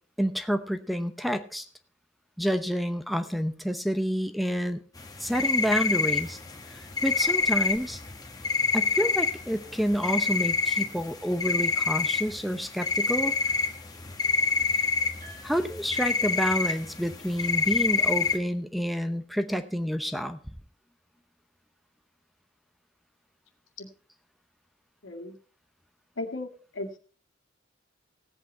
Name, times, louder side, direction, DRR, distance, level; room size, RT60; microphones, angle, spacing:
voice 1, 0.2-1.7 2.4-4.8 5.2-6.4 6.7-8.0 8.7-13.3 14.8-14.9 15.4-20.4, equal, ahead, 9 dB, 0.7 m, -29 dB
sound 1, 5.0-18.4, left 4 dB, 20° left, 1.5 m, -27 dB
voice 2, 25.0-25.3 26.2-27.0, left 2 dB, 85° left, 2 dB, 2.1 m, -36 dB
17.0 x 8.2 x 4.4 m, 0.42 s
head